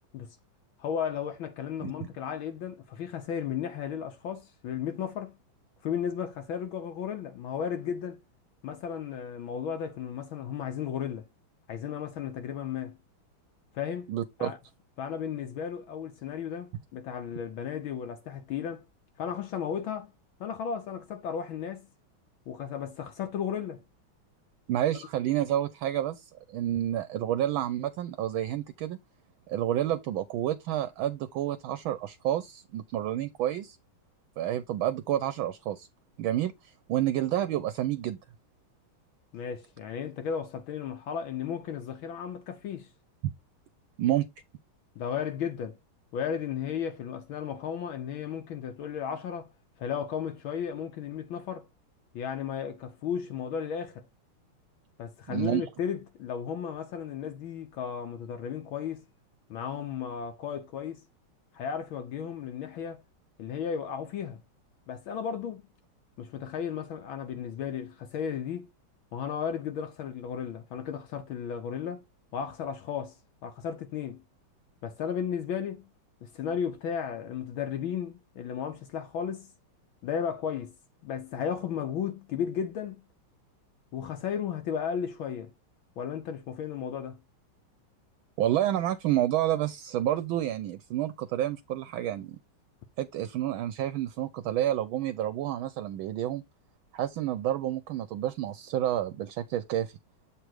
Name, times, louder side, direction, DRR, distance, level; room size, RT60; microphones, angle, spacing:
voice 1, 0.8-5.4 5.8-8.2 8.6-11.2 11.7-13.0 13.7-14.1 14.4-14.6 15.0-18.8 19.2-20.1 20.4-21.9 22.5-23.8 39.3-42.9 44.9-45.8 46.1-49.5 49.8-51.7 52.1-54.0 55.0-59.0 59.5-61.0 61.5-63.0 63.4-64.4 64.9-65.7 66.2-68.7 69.1-72.0 72.3-73.2 73.4-74.2 74.8-75.9 76.2-79.5 80.0-80.7 81.0-83.1 83.9-85.5 86.0-87.2, left 8 dB, 75° left, 1.6 m, -34 dB
voice 2, 14.1-14.5 24.7-29.0 29.5-33.8 34.4-35.9 36.2-38.2 43.2-43.3 44.0-44.3 55.3-55.6 88.4-92.4 93.0-96.4 96.9-100.0, right 12 dB, 75° right, 1.3 m, -29 dB
7.7 x 3.3 x 4.6 m
omnidirectional pair, 2.3 m